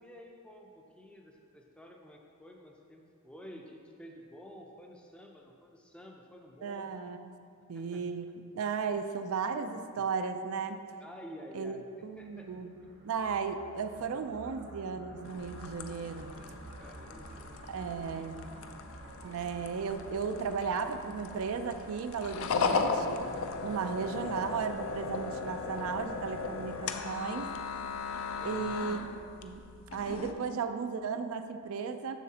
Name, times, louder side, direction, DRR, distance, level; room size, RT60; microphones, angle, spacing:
voice 1, 0.0-7.0 7.7-8.0 11.0-12.5 16.0-17.7 18.1-18.3 28.4-28.8, equal, 5° left, 0 dB, 0.4 m, -51 dB
voice 2, 6.6-7.2 7.7-8.3 8.5-10.8 11.5-12.8 13.0-16.4 17.7-18.5 19.2-23.3 23.6-27.5 28.4-29.6 29.9-32.1, right 5 dB, 70° right, 8 dB, 0.4 m, -35 dB
sound 1, 12.2-27.7, right 2 dB, 50° right, 0.7 m, -53 dB
sound 2, 15.2-30.3, left 4 dB, 65° left, 0.4 m, -37 dB
7.2 x 6.6 x 2.8 m, 2.5 s
head